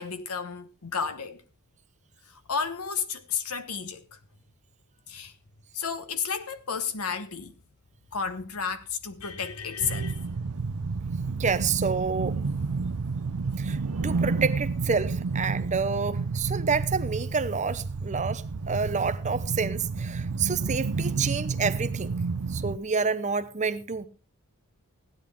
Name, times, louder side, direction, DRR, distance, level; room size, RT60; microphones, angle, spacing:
voice 1, 0.0-1.4 2.3-4.1 5.1-5.3 5.7-7.5 8.1-10.2, left 6 dB, 80° left, 1.2 m, -32 dB
sound 1, 9.8-22.8, right 4 dB, 85° right, 0.6 m, -30 dB
voice 2, 11.4-12.4 13.6-22.1 22.5-24.1, right 5 dB, 30° right, 0.7 m, -28 dB
15.5 x 10.5 x 3.5 m
head